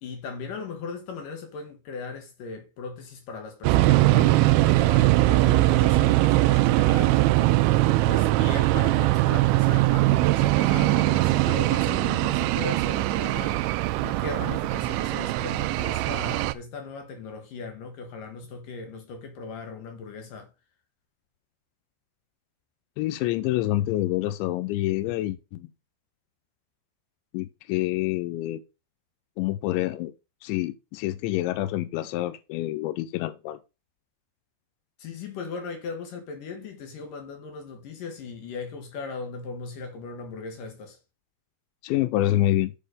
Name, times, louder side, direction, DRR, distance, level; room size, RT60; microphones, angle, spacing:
voice 1, 0.0-7.3 8.0-13.6 14.0-20.5 35.0-41.0, left 4 dB, 65° left, 2.3 m, -38 dB
sound 1, 3.6-16.5, right 18 dB, 80° right, 2.8 m, -21 dB
voice 2, 23.0-25.7 27.3-28.6 29.4-30.1 30.4-33.6 41.8-42.7, left 15 dB, 85° left, 2.9 m, -27 dB
7.7 x 5.2 x 5.0 m
omnidirectional pair, 5.5 m